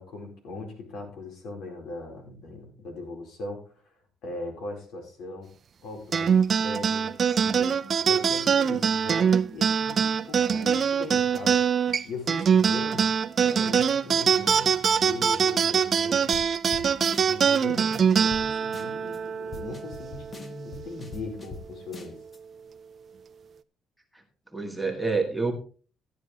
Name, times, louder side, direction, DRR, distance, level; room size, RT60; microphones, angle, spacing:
voice 1, 0.0-3.7 4.2-5.5 5.8-7.1 8.0-13.1 13.3-16.3 17.2-22.2, left 3 dB, 75° left, 2 dB, 4.7 m, -40 dB
sound 1, 6.1-20.9, right 7 dB, 35° right, 0.5 m, -23 dB
voice 2, 7.3-7.8 24.1-24.2 24.5-25.5, right 4 dB, ahead, 4 dB, 1.7 m, -29 dB
sound 2, 16.3-16.5 16.7-16.9 17.1-17.6 17.9-18.0 18.3-18.4 18.7-19.2 19.5-21.6 21.9-22.4, left 3 dB, 25° left, 1.1 m, -42 dB
14.0 x 9.7 x 3.3 m, 0.39 s
cardioid pair, 145°, 0 cm